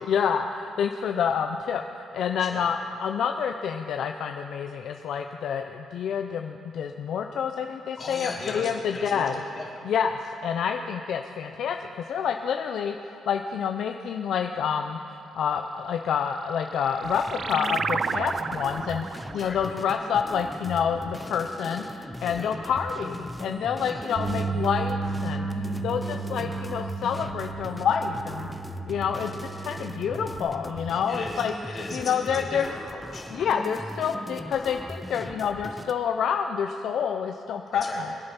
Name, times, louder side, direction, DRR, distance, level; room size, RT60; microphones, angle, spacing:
voice 1, 0.0-9.3 9.8-15.0 15.3-28.5 28.8-31.5 31.9-32.7 33.3-38.2, left 7 dB, 70° left, 5 dB, 0.6 m, -28 dB
voice 2, 8.0-9.7 19.3-19.6 22.3-22.5 23.8-24.0 31.1-33.3 37.8-38.0, left 2 dB, 40° left, -2 dB, 3.6 m, -37 dB
sound 1, 16.4-21.5, right 5 dB, 45° right, 0.4 m, -33 dB
sound 2, 17.0-35.9, left 1 dB, 5° left, 0.7 m, -39 dB
Bass guitar, 24.1-30.4, right 4 dB, 65° right, 3.5 m, -33 dB
23.0 x 8.7 x 5.8 m, 2.5 s
cardioid pair, 90°, 0 cm